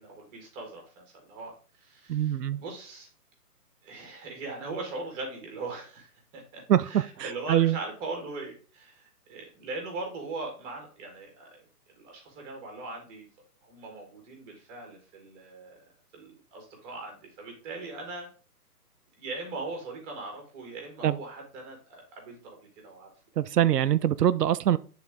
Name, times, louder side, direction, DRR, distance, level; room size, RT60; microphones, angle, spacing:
voice 1, 0.0-1.5 1.8-3.1 3.8-11.6 11.9-13.3 13.6-15.8 16.1-18.3 19.2-22.6 22.8-23.1, right 3 dB, 15° right, 1.4 m, -40 dB
voice 2, 2.1-2.6 6.7-7.8 21.0-21.2 23.4-24.8, right 11 dB, 90° right, 0.5 m, -24 dB
7.3 x 3.8 x 3.6 m
hypercardioid pair, 150°, 46 cm